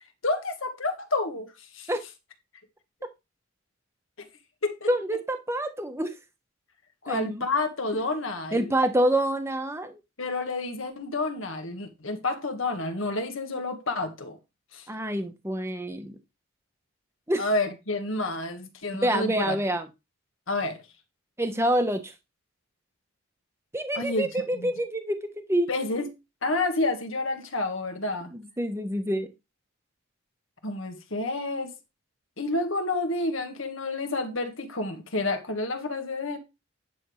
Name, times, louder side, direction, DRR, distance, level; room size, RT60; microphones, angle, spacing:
voice 1, 0.2-1.5 1.7-1.9 4.6-4.9 7.0-8.7 10.2-14.4 14.7-14.9 17.4-19.6 20.5-20.8 23.9-24.7 25.7-26.1 26.4-28.3 30.6-31.7 32.4-36.4, left 2 dB, 65° left, 1.6 m, -29 dB
voice 2, 4.9-6.1 7.1-7.4 8.5-10.0 14.9-16.2 17.3-17.4 18.9-19.9 21.4-22.1 23.7-25.7 28.3-29.3, right 1 dB, 10° right, 1.0 m, -27 dB
10.5 x 3.5 x 6.3 m
head